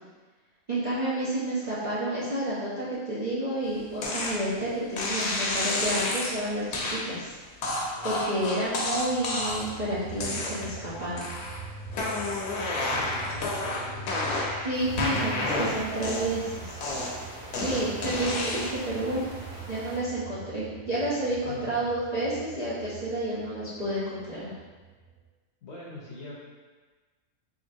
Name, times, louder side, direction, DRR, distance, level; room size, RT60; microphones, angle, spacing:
voice 1, 0.7-7.3 8.0-11.3 14.6-16.8 17.6-19.2 19.7-24.5, right 1 dB, 45° right, -11 dB, 0.5 m, -30 dB
sound 1, 4.0-4.4 5.0-6.3 6.7-7.0 7.6-9.7 10.2-10.8 11.2-11.6 11.9-14.6 15.0-16.4 16.8-18.8, left 2 dB, 85° left, 1.2 m, -30 dB
voice 2, 7.9-8.5 12.9-14.4 21.4-21.9 25.6-26.3, left 2 dB, 60° left, -5 dB, 0.9 m, -43 dB
sound 2, 9.1-25.2, right 4 dB, 60° right, 2.0 m, -44 dB
sound 3, 14.7-20.0, right 1 dB, 85° right, 1.3 m, -44 dB
3.8 x 3.2 x 2.7 m, 1.3 s
omnidirectional pair, 1.6 m